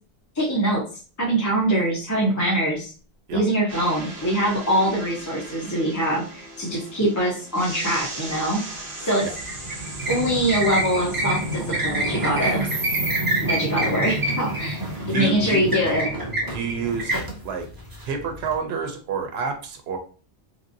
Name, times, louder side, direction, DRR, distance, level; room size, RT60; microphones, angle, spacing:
voice 1, 0.3-0.9 1.2-2.9 3.3-8.6 9.0-9.3 10.1-12.6 13.4-16.1, right 1 dB, 20° left, -4 dB, 0.6 m, -23 dB
sound 1, 3.7-16.7, right 2 dB, 60° right, 1.2 m, -38 dB
sound 2, 9.2-18.5, right 1 dB, 25° right, 0.5 m, -27 dB
voice 2, 15.1-15.7 16.4-17.2 17.4-17.7 18.0-20.0, right 5 dB, 80° right, 5 dB, 0.8 m, -29 dB
2.9 x 2.5 x 2.6 m, 0.37 s
omnidirectional pair, 1.0 m